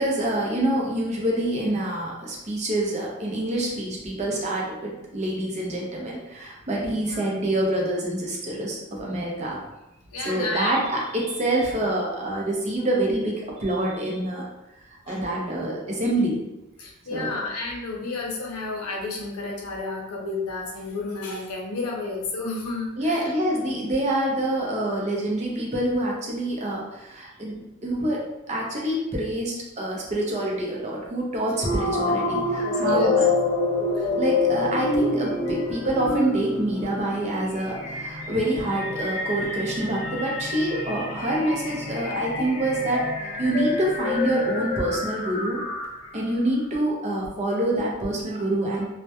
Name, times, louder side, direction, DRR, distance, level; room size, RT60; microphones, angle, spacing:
voice 1, 0.0-9.6 10.2-14.4 14.9-16.4 17.1-17.3 23.0-28.2 28.5-33.1 34.2-43.1 43.4-45.6 46.1-48.9, right 1 dB, 30° right, -2 dB, 0.5 m, -26 dB
voice 2, 10.1-10.9 15.1-15.2 16.8-23.3 32.3-33.2 33.9-34.1, left 3 dB, 85° left, -1 dB, 0.6 m, -31 dB
sound 1, 31.6-46.2, left 3 dB, 30° left, 0.4 m, -27 dB
2.2 x 2.1 x 2.8 m, 0.94 s
head